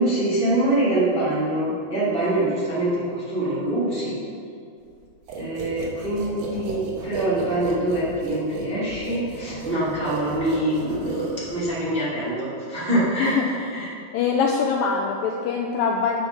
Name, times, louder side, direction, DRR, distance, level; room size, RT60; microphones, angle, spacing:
voice 1, 0.0-4.1 5.4-13.9, right 1 dB, 20° right, -8 dB, 1.7 m, -24 dB
sound 1, 5.3-11.8, right 4 dB, 70° right, 2.6 m, -33 dB
voice 2, 13.2-13.9 14.1-16.2, left 5 dB, 85° left, 0 dB, 2.0 m, -24 dB
8.6 x 6.3 x 6.3 m, 2.4 s
omnidirectional pair, 4.6 m